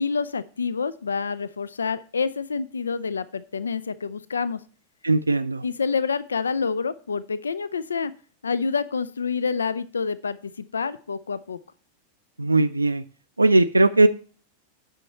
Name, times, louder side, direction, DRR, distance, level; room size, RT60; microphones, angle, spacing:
voice 1, 0.0-4.6 5.6-8.1 8.4-11.6, left 5 dB, 75° left, 17 dB, 0.3 m, -27 dB
voice 2, 5.0-5.6 12.4-13.0 13.4-14.1, right 2 dB, 80° right, 8 dB, 0.3 m, -19 dB
8.9 x 5.7 x 4.2 m, 0.43 s
figure-of-eight pair, 90°, 0 cm